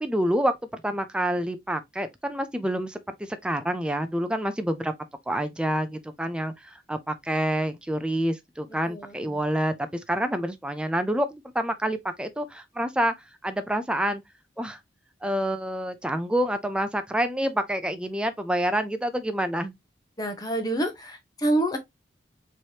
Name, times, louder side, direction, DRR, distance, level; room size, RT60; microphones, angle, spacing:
voice 1, 0.0-4.9 5.3-13.1 13.4-14.2 14.6-14.8 15.2-19.7, right 1 dB, 5° right, 0.4 m, -27 dB
voice 2, 20.2-21.8, right 1 dB, 20° left, 0.9 m, -27 dB
4.5 x 3.2 x 2.8 m
head